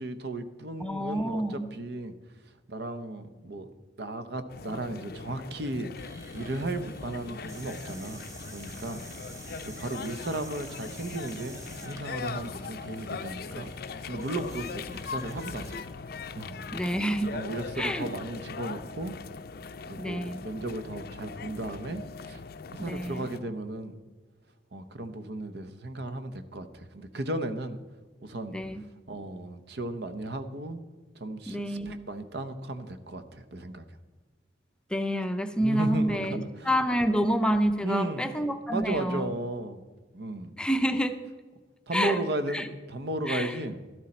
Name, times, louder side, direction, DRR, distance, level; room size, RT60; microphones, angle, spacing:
voice 1, 0.0-2.1 2.7-3.7 4.0-5.9 6.3-8.2 8.5-9.2 9.6-13.7 14.1-15.8 16.4-16.6 17.3-19.1 19.9-22.4 22.7-24.0 24.7-27.8 28.2-28.6 29.1-30.8 31.2-33.8 35.6-36.7 37.8-38.4 38.7-39.8 40.1-40.5 41.9-43.8, right 2 dB, 65° right, 10 dB, 0.9 m, -35 dB
voice 2, 0.8-1.7 16.7-17.4 17.8-18.1 20.0-20.4 22.8-23.3 28.5-28.8 31.5-31.9 34.9-39.3 40.6-41.2 41.9-42.2 42.5-42.7 43.3-43.6, equal, 5° left, 7 dB, 0.6 m, -28 dB
sound 1, 4.5-23.4, left 5 dB, 60° left, 0.5 m, -40 dB
sound 2, 6.0-15.9, right 1 dB, 20° right, 1.1 m, -47 dB
12.5 x 12.0 x 4.3 m, 1.4 s
head